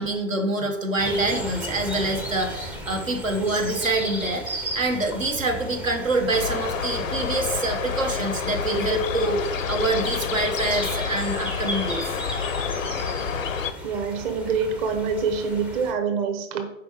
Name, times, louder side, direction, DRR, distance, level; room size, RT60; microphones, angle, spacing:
voice 1, 0.0-12.0, right 2 dB, 85° right, 3 dB, 1.1 m, -26 dB
sound 1, 1.0-15.9, equal, 5° right, 0.3 m, -35 dB
sound 2, 6.3-13.7, left 6 dB, 85° left, 0.5 m, -29 dB
voice 2, 13.8-16.7, right 5 dB, 40° right, 6 dB, 0.9 m, -26 dB
5.1 x 4.8 x 4.7 m, 0.88 s
figure-of-eight pair, 95°, 39 cm